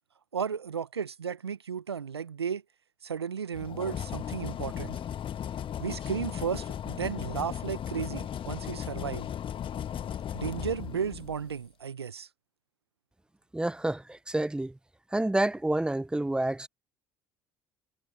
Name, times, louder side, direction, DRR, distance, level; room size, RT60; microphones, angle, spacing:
voice 1, 0.3-2.6 3.0-5.0 5.8-9.3 10.3-12.3, right 7 dB, 85° right, 1.3 m, -34 dB
sound 1, 3.5-11.5, left 9 dB, 40° left, 1.4 m, -36 dB
voice 2, 13.5-14.7 15.1-16.7, right 1 dB, 5° right, 0.6 m, -28 dB
figure-of-eight pair, 55°, 13 cm